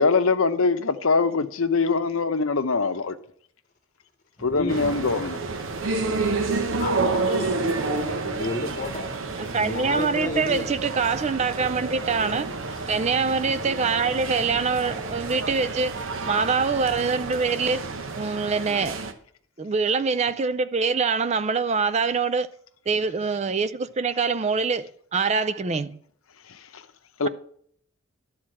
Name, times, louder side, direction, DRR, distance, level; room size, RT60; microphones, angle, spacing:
voice 1, 0.0-3.1 4.4-5.4 27.2-27.3, left 4 dB, 80° left, 0.8 m, -22 dB
sound 1, 4.4-17.3, equal, 10° right, 3.6 m, -44 dB
voice 2, 4.5-5.0 6.8-7.5 8.2-9.1 9.5-10.7, left 2 dB, 40° left, 1.0 m, -31 dB
sound 2, 4.7-19.1, right 3 dB, 70° right, 0.9 m, -30 dB
voice 3, 9.4-12.5 12.9-15.9 16.2-17.8 18.1-19.0 19.6-22.5 22.9-26.0, right 5 dB, 30° right, 0.4 m, -24 dB
11.5 x 4.3 x 7.6 m
head